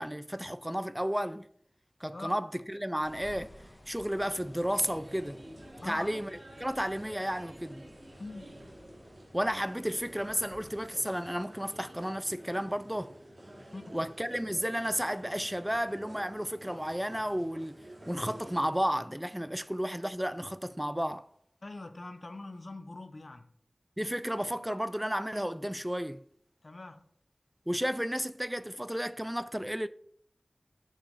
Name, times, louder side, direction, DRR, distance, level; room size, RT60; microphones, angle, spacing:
voice 1, 0.0-1.5 2.0-3.5 3.9-5.4 5.8-7.8 9.3-13.1 13.9-17.8 18.1-21.3 24.0-26.2 27.7-29.9, equal, 5° right, 0.3 m, -32 dB
sound 1, 3.0-10.9, equal, 20° left, 1.4 m, -55 dB
sound 2, 4.1-18.7, right 1 dB, 90° right, 3.2 m, -50 dB
voice 2, 8.2-8.5 13.7-13.8 21.6-23.5 26.6-27.0, left 2 dB, 55° left, 0.8 m, -42 dB
6.7 x 5.5 x 4.7 m
wide cardioid pair, 60°, 0 cm